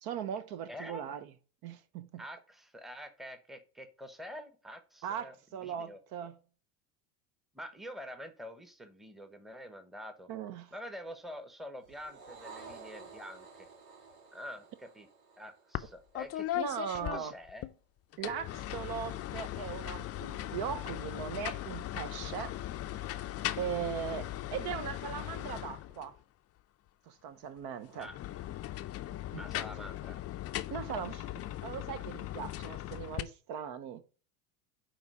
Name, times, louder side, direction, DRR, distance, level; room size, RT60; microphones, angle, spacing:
voice 1, 0.0-1.3 1.6-2.2 5.0-6.4 10.3-10.7 16.6-17.3 18.2-22.5 22.9-23.3 23.6-26.1 27.1-28.1 29.3-29.4 30.7-31.3 31.6-34.0, right 8 dB, 55° right, 0.8 m, -39 dB
voice 2, 0.7-1.1 2.2-5.3 5.6-6.0 7.5-10.3 10.7-13.7 14.3-15.1 15.4-16.6 16.9-17.7 23.8-24.0 28.0-28.2 29.4-30.2, equal, ahead, 0.9 m, -46 dB
sound 1, 11.8-16.4, right 4 dB, 80° right, 2.1 m, -52 dB
sound 2, 15.7-17.7 18.1-26.2 27.9-33.2, left 14 dB, 30° left, 0.5 m, -38 dB
8.9 x 3.0 x 4.8 m
hypercardioid pair, 85°, 47 cm